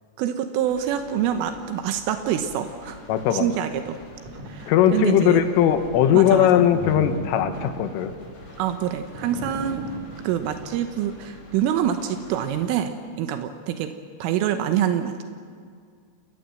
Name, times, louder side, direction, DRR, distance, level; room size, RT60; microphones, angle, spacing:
voice 1, 0.2-3.0 3.3-4.0 4.5-5.4 6.1-6.7 8.6-9.9 10.2-12.9 13.2-15.2, right 10 dB, 80° right, 7 dB, 3.6 m, -26 dB
sound 1, 0.6-12.7, left 1 dB, 50° left, 8.2 m, -47 dB
voice 2, 3.1-3.5 4.7-8.1, left 10 dB, 85° left, 9 dB, 3.9 m, -19 dB
sound 2, 4.1-4.5 5.0-5.2 5.7-10.7, right 1 dB, 45° right, 3.7 m, -37 dB
28.5 x 19.5 x 7.7 m, 2.1 s
omnidirectional pair, 5.7 m